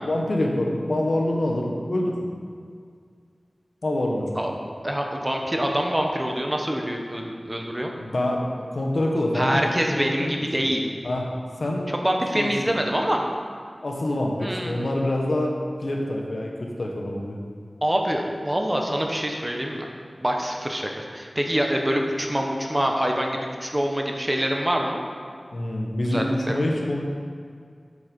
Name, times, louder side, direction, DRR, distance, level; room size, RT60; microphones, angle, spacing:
voice 1, 0.0-2.2 3.8-4.3 8.0-10.5 11.0-11.2 11.6-11.9 12.3-12.5 13.8-17.4 25.5-27.0, left 1 dB, 70° left, -1 dB, 1.3 m, -26 dB
voice 2, 4.8-7.9 9.3-10.9 11.9-13.2 14.4-15.0 17.8-19.9 20.2-25.0 26.1-26.6, equal, 20° right, 1 dB, 1.1 m, -25 dB
7.9 x 6.6 x 5.4 m, 2.1 s
wide cardioid pair, 60°, 0 cm